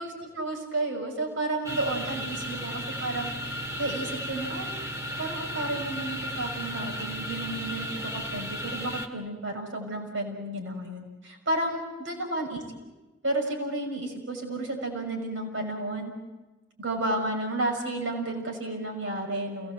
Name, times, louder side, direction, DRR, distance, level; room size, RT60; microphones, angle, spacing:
voice 1, 0.0-3.3 3.8-4.7 5.2-7.9 8.1-12.6 13.2-16.1 16.8-19.7, right 2 dB, 80° right, 2 dB, 6.1 m, -32 dB
sound 1, 1.6-9.1, equal, 15° right, 2.2 m, -34 dB
29.5 x 19.0 x 8.0 m, 1.1 s
head